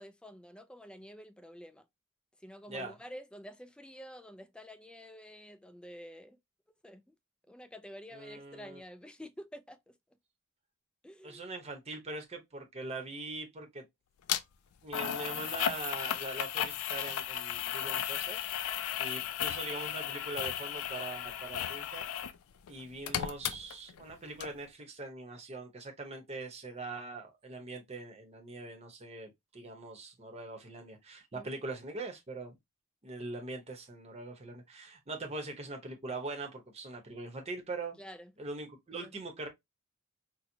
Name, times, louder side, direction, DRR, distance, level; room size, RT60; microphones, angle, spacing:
voice 1, 0.0-1.9 2.4-6.4 6.8-7.1 7.5-10.0 11.0-11.5 20.4-20.6 31.3-31.6 38.0-38.3 38.9-39.1, equal, 5° left, 0.3 m, -49 dB
voice 2, 8.1-8.8 11.2-13.8 14.8-18.4 19.0-22.0 22.7-32.6 33.0-38.0 38.4-39.5, right 2 dB, 30° right, 0.8 m, -42 dB
sound 1, 14.3-14.4 14.9-22.4 22.7-24.1 24.4-24.5, left 10 dB, 85° left, 0.4 m, -35 dB
4.3 x 2.1 x 2.6 m
head